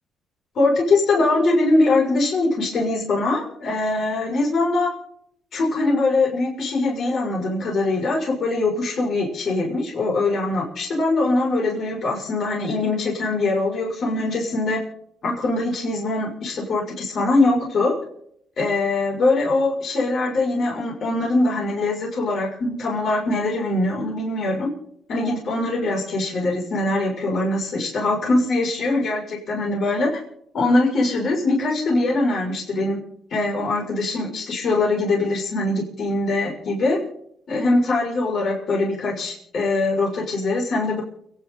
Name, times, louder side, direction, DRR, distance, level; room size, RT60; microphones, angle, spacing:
voice 1, 0.5-4.9 5.5-14.8 15.2-17.9 18.6-24.7 25.1-30.1 30.5-33.0 33.3-37.0 37.5-41.0, left 2 dB, 60° left, -1 dB, 6.3 m, -22 dB
30.0 x 10.5 x 4.0 m, 0.68 s
cardioid pair, 90°, 0 cm